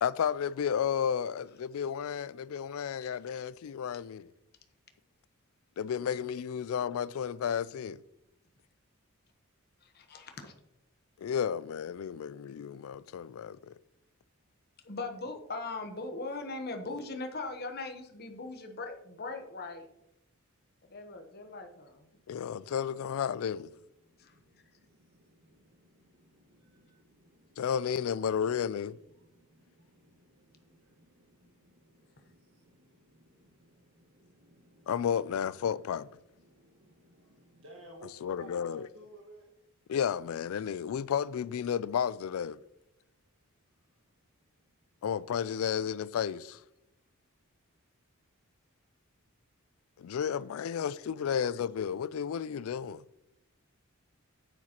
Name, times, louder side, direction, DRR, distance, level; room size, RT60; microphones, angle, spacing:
voice 1, 0.0-4.3 5.8-8.0 11.2-13.7 22.3-23.7 27.6-29.0 34.9-36.1 38.2-38.9 39.9-42.6 45.0-46.6 50.0-53.0, left 8 dB, 70° left, 0.3 m, -32 dB
voice 2, 10.1-10.5 14.8-19.9 20.9-22.1 24.2-24.3, left 3 dB, 45° left, 1.0 m, -39 dB
voice 3, 22.3-22.7 23.7-39.9 43.8-44.2 44.6-45.0 50.2-51.8, right 1 dB, 70° right, 1.6 m, -59 dB
9.7 x 9.1 x 2.9 m
head